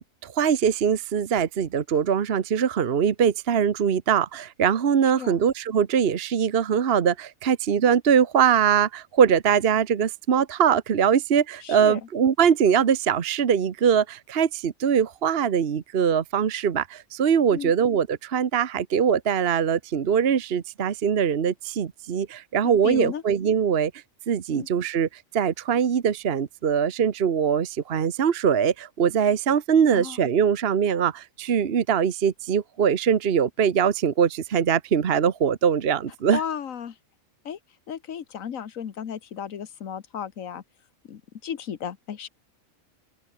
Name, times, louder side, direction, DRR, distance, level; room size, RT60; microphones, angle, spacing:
voice 1, 0.0-23.9 24.3-36.4, right 7 dB, 50° right, 1.1 m, -22 dB
voice 2, 11.6-12.0 17.5-17.7 22.6-23.2 24.5-24.7 29.9-30.2 36.3-37.0 37.4-37.6 37.9-40.6 41.0-42.3, left 8 dB, 75° left, 1.6 m, -34 dB
open air
omnidirectional pair, 1.4 m